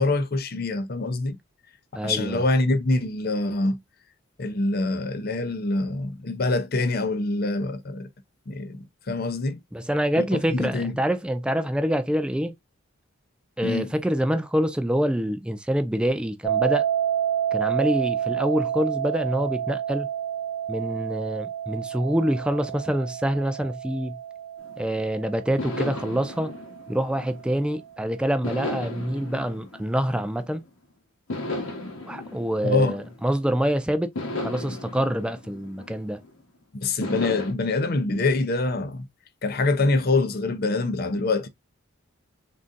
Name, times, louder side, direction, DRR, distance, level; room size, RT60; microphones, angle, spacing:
voice 1, 0.0-1.4 2.0-3.8 4.4-8.1 8.5-9.6 10.1-10.9 13.6-13.9 32.6-32.9 36.7-39.1 39.4-41.5, left 2 dB, 45° left, 0.6 m, -25 dB
voice 2, 2.0-2.4 9.7-12.6 13.6-16.9 17.5-20.1 20.7-24.2 24.8-26.5 26.9-30.6 32.1-34.1 34.4-36.2, equal, 5° right, 0.3 m, -26 dB
sound 1, 16.4-27.4, right 10 dB, 20° left, 0.9 m, -29 dB
sound 2, 24.6-25.0 25.6-27.8 28.4-30.7 31.3-33.6 34.1-36.4 37.0-37.5, left 2 dB, 80° left, 1.2 m, -35 dB
3.8 x 3.7 x 2.5 m
head